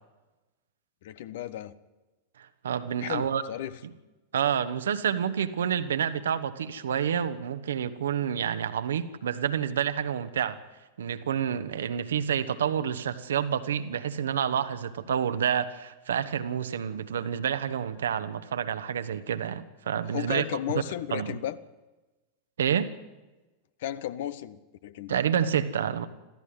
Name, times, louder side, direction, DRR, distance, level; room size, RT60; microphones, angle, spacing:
voice 1, 1.0-1.7 3.0-3.8 20.0-21.6 23.8-25.2, left 12 dB, 55° left, 16 dB, 1.1 m, -34 dB
voice 2, 2.4-3.4 4.3-10.6 11.0-20.4 20.7-20.8 21.1-21.4 22.6-22.9 25.1-26.1, right 8 dB, 65° right, 11 dB, 1.3 m, -28 dB
26.0 x 15.0 x 9.5 m, 1.2 s
figure-of-eight pair, 90°, 0 cm